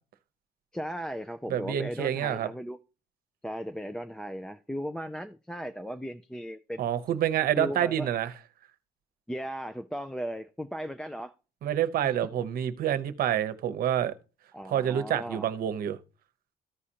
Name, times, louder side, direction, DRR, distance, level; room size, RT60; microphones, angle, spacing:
voice 1, 0.7-2.8 3.4-6.9 7.6-8.1 9.3-11.3 12.0-12.1 14.5-15.4, equal, 5° left, 0.4 m, -36 dB
voice 2, 1.5-2.5 6.8-8.3 11.6-14.1 14.7-16.0, right 10 dB, 60° right, 0.8 m, -27 dB
14.5 x 4.9 x 2.8 m
cardioid pair, 110°, 17 cm